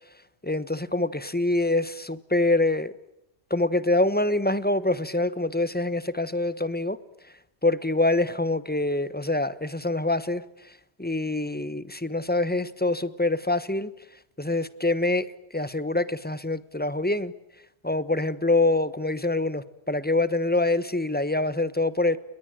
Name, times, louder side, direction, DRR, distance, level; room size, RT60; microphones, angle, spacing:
voice 1, 0.4-2.9 3.5-7.0 7.6-13.9 14.4-17.3 17.8-22.2, left 2 dB, 10° left, 15 dB, 1.1 m, -25 dB
28.5 x 22.0 x 9.1 m, 0.83 s
omnidirectional pair, 1.1 m